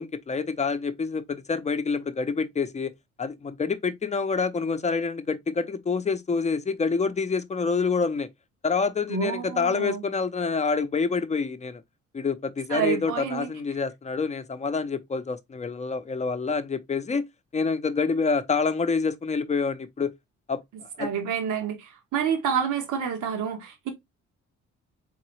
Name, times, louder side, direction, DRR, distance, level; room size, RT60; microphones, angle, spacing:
voice 1, 0.0-2.9 3.2-8.3 8.6-11.8 12.1-17.3 17.5-20.1 20.5-21.1, left 4 dB, 25° left, 0.6 m, -27 dB
voice 2, 9.1-10.0 12.7-13.5 21.0-23.9, right 7 dB, 80° right, 1.2 m, -28 dB
3.8 x 3.8 x 3.1 m
cardioid pair, 90°, 30 cm